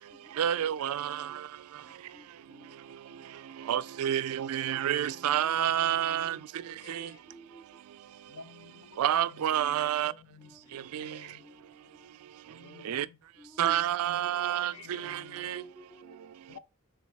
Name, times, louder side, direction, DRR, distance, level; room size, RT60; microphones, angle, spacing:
voice 1, 0.4-1.1 3.7-6.3 9.0-10.1 12.9-13.0 13.6-14.7, right 11 dB, 80° right, 0.3 m, -28 dB
voice 2, 2.1-2.8 6.6-7.8 10.4-10.8 11.4-12.2 13.4-13.7 14.1-14.7 14.9-16.3, right 2 dB, 10° left, 0.3 m, -55 dB
voice 3, 4.9-7.2 8.3-11.4 12.5-13.2 14.6-15.5 16.5-16.6, left 5 dB, 70° left, 0.6 m, -53 dB
4.0 x 2.8 x 4.4 m
head